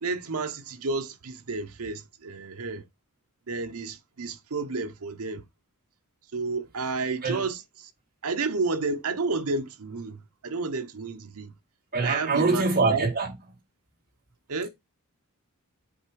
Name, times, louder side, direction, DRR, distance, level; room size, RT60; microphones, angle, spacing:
voice 1, 0.0-2.8 3.5-5.4 6.3-7.9 8.2-11.5 12.0-13.1 14.5-14.7, right 3 dB, 75° right, 0.8 m, -31 dB
voice 2, 11.9-13.3, right 3 dB, 40° right, 2.3 m, -24 dB
8.1 x 3.3 x 4.6 m
head